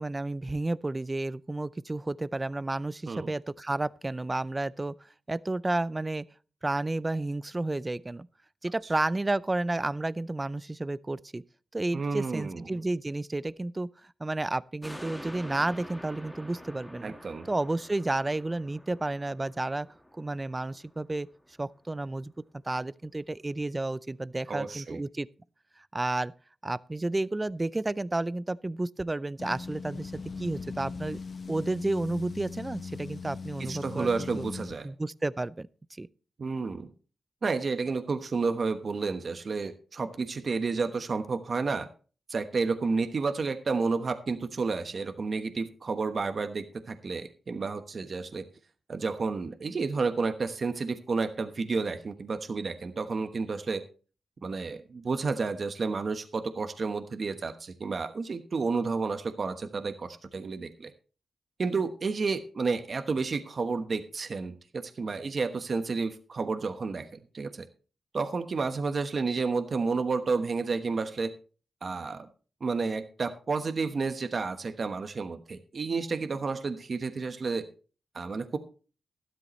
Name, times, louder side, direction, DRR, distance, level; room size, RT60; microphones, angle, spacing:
voice 1, 0.0-6.2 6.6-8.3 8.6-11.4 11.7-17.1 17.5-19.9 20.1-21.3 21.6-22.3 22.6-25.3 25.8-26.3 26.6-31.2 31.5-34.5 34.8-36.1, right 2 dB, 20° right, 0.4 m, -31 dB
voice 2, 11.9-12.6 17.0-17.5 24.5-25.0 33.7-34.9 36.4-36.9 37.4-41.9 42.3-48.5 48.9-53.8 54.4-60.9 61.6-67.7 68.1-71.3 71.8-72.3 72.6-77.7 78.1-78.6, right 4 dB, 50° right, 1.1 m, -31 dB
sound 1, 14.8-21.5 21.9-22.0, equal, 5° left, 1.6 m, -47 dB
sound 2, 29.4-34.7, left 4 dB, 50° left, 0.7 m, -40 dB
13.0 x 12.5 x 3.1 m
cardioid pair, 80°, 0 cm